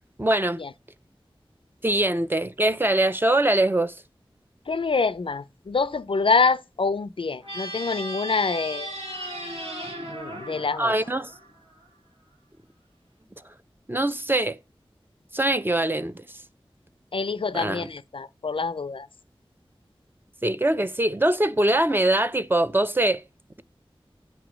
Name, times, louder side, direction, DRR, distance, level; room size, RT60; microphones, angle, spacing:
voice 1, 0.2-0.6 1.8-3.9 10.8-11.3 13.9-14.6 15.3-16.2 17.5-17.9 20.4-23.2, right 1 dB, 20° right, 0.4 m, -23 dB
voice 2, 4.7-8.9 10.1-10.9 17.1-19.1, left 4 dB, 65° left, 0.4 m, -26 dB
sound 1, 7.4-11.9, right 1 dB, 85° right, 2.1 m, -36 dB
8.3 x 3.0 x 6.0 m
wide cardioid pair, 50°, 10 cm